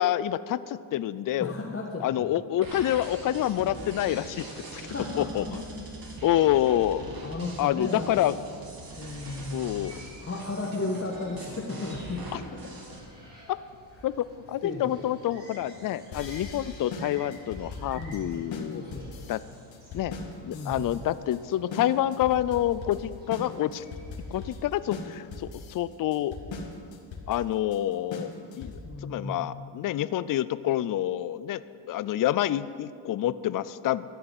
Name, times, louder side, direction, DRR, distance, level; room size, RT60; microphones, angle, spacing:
voice 1, 0.0-1.5 2.0-4.5 4.7-4.8 5.2-5.6 6.2-7.1 7.6-8.3 9.5-9.9 12.3-12.4 14.0-18.8 19.3-19.4 19.9-20.1 20.4-23.8 24.3-26.4 27.3-28.3 28.6-31.6 31.9-34.2, left 12 dB, 45° left, 16 dB, 0.5 m, -27 dB
voice 2, 1.4-2.3 4.8-5.5 7.2-8.3 9.0-9.6 10.2-12.6 12.9-13.0 14.6-15.1 17.9-18.3 18.7-19.1 20.5-20.9 28.8-29.4, left 2 dB, 25° left, -3 dB, 1.5 m, -35 dB
sound 1, 2.6-13.0, right 2 dB, 45° right, 2.5 m, -42 dB
sound 2, 7.0-24.5, equal, 20° right, 4.0 m, -52 dB
sound 3, 16.1-29.0, left 3 dB, 65° left, 2.0 m, -40 dB
13.0 x 6.9 x 9.7 m, 2.3 s
cardioid pair, 110°, 49 cm